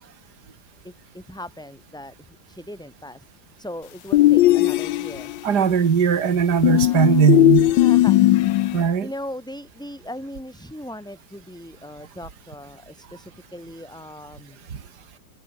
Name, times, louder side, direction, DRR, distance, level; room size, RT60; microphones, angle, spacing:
voice 1, 0.8-3.3 3.6-5.3 6.7-8.6 9.0-14.6, left 1 dB, ahead, 6.1 m, -39 dB
sound 1, 4.1-5.4 6.6-8.8, left 15 dB, 75° left, 1.3 m, -17 dB
voice 2, 5.4-7.7 8.7-9.1, right 6 dB, 55° right, 2.4 m, -19 dB
omnidirectional pair, 2.1 m